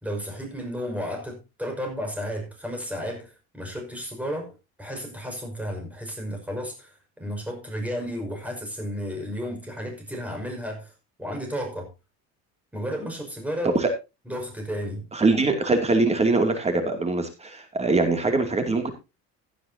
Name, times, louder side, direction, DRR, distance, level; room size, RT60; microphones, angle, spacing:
voice 1, 0.0-10.9 11.2-11.9 12.7-13.7 14.3-15.1, equal, 5° right, 5.6 m, -33 dB
voice 2, 15.1-18.9, right 3 dB, 20° right, 2.7 m, -22 dB
16.5 x 10.0 x 2.8 m
cardioid pair, 145°, 30 cm